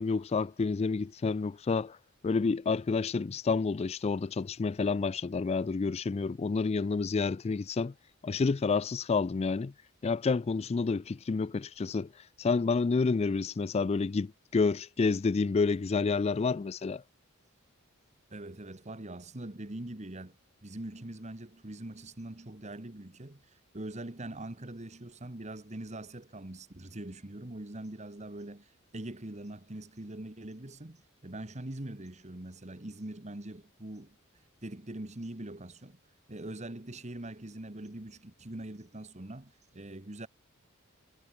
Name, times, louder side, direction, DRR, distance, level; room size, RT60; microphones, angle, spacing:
voice 1, 0.0-2.0 2.2-7.9 8.2-9.7 10.0-12.1 12.4-17.0, left 4 dB, 30° left, 0.3 m, -29 dB
voice 2, 18.3-34.2 34.6-36.0 36.3-40.3, right 1 dB, 35° right, 1.5 m, -43 dB
head